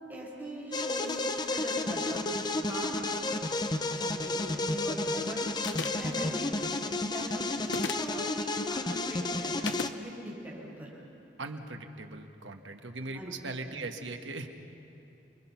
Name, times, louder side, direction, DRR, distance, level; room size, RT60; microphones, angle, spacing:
voice 1, 0.1-1.1 1.4-2.3 2.7-3.0 4.0-6.4 7.0-7.5 8.0-9.6 10.0-10.9 13.1-13.3 13.7-13.9, equal, 10° right, -5 dB, 6.4 m, -41 dB
sound 1, 0.7-9.9, left 2 dB, 25° left, 0.8 m, -32 dB
sound 2, 5.6-6.1 7.6-8.1 9.6-10.0, left 5 dB, 70° left, 0.8 m, -35 dB
voice 2, 11.4-14.5, right 3 dB, 80° right, 4 dB, 1.6 m, -39 dB
29.5 x 22.5 x 5.9 m, 2.8 s
head